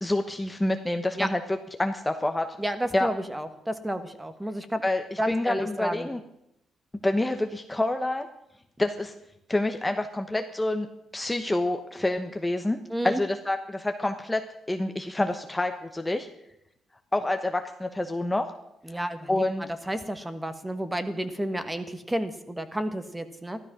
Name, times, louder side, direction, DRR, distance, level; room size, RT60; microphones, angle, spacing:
voice 1, 0.0-2.5 2.9-3.1 4.8-6.2 7.0-8.3 8.8-9.1 9.5-10.9 11.1-12.8 13.0-14.4 14.7-16.3 17.1-18.4 18.9-19.6, left 1 dB, 10° left, 6 dB, 1.0 m, -27 dB
voice 2, 2.6-4.8 5.2-6.1 12.9-13.2 18.8-23.6, right 1 dB, 10° right, 9 dB, 1.4 m, -31 dB
14.0 x 13.0 x 6.1 m, 0.81 s
cardioid pair, 90°, 0 cm